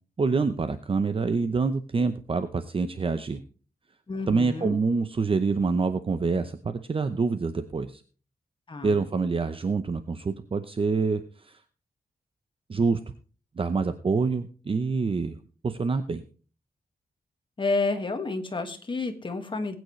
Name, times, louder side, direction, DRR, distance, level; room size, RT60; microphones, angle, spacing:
voice 1, 0.2-3.4 4.3-8.0 8.8-11.6 12.7-13.0 13.6-16.2, right 4 dB, 35° right, 10 dB, 0.7 m, -26 dB
voice 2, 4.1-4.8 8.7-9.0 17.6-19.8, left 3 dB, 30° left, 6 dB, 1.8 m, -30 dB
20.5 x 9.2 x 3.2 m, 0.38 s
wide cardioid pair, 145°, 16 cm